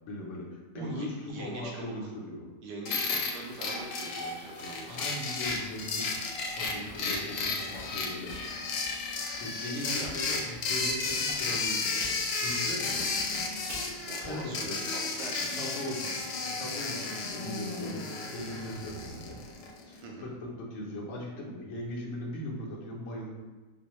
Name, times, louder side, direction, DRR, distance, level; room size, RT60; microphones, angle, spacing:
voice 1, 0.1-2.4 4.9-6.1 6.6-8.4 9.3-12.1 12.4-12.9 14.2-14.9 15.5-16.1 16.5-19.4 19.9-23.3, left 1 dB, 60° left, -3 dB, 1.0 m, -39 dB
voice 2, 0.7-1.9 2.6-5.0 9.7-10.1 14.1-15.9 20.0-20.3, right 2 dB, 90° right, -1 dB, 1.2 m, -42 dB
sound 1, 2.9-19.8, left 4 dB, 85° left, 1.2 m, -33 dB
Typing, 5.4-10.2 10.5-14.7, right 1 dB, 55° right, 1.2 m, -48 dB
4.3 x 2.1 x 3.0 m, 1.2 s
omnidirectional pair, 1.7 m